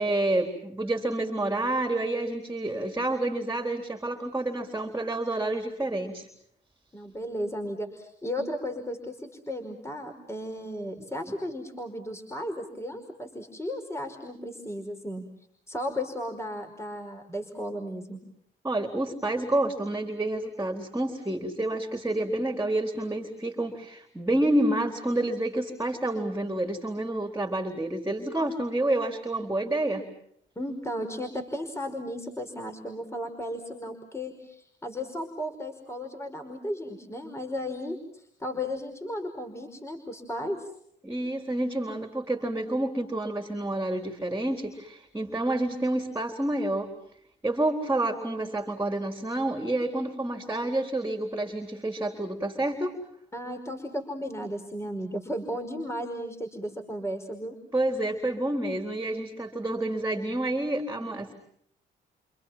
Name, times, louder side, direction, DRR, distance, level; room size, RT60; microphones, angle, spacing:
voice 1, 0.0-6.3 11.0-11.1 18.6-30.0 41.0-46.9 47.4-53.0 57.7-61.3, right 1 dB, 15° right, 4 dB, 4.0 m, -29 dB
voice 2, 6.9-15.2 15.7-18.2 30.5-40.7 53.3-57.6, equal, 15° left, 5 dB, 5.1 m, -35 dB
30.0 x 27.5 x 5.9 m, 0.68 s
cardioid pair, 90°, 20 cm